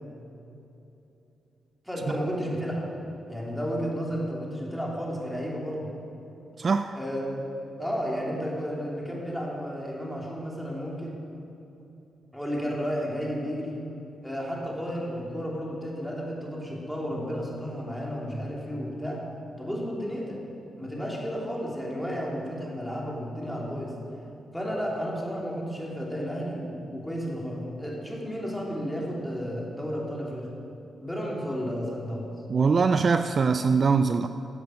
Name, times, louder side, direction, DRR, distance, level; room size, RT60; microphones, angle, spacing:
voice 1, 1.8-2.8 3.3-5.9 6.9-7.4 7.8-11.2 12.3-13.8 14.2-19.2 19.6-20.4 20.8-23.9 24.5-30.5 31.0-32.3, equal, ahead, -4 dB, 3.2 m, -32 dB
voice 2, 6.6-7.0 32.5-34.3, right 5 dB, 50° right, 9 dB, 0.4 m, -22 dB
15.0 x 8.0 x 6.5 m, 2.9 s
cardioid pair, 85°, 0 cm